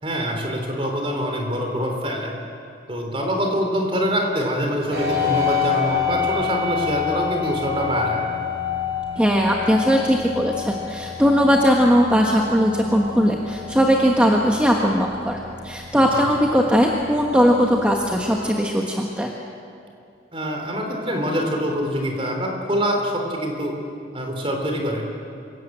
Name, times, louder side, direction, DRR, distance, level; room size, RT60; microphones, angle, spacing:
voice 1, 0.0-2.3 2.9-8.2 16.1-16.3 20.3-23.8 24.1-25.1, equal, 30° right, 2 dB, 3.6 m, -25 dB
sound 1, 4.9-18.5, left 7 dB, 60° right, 5.4 m, -29 dB
voice 2, 9.2-19.3, equal, 5° right, 0 dB, 1.3 m, -19 dB
26.5 x 17.5 x 8.0 m, 2.5 s
head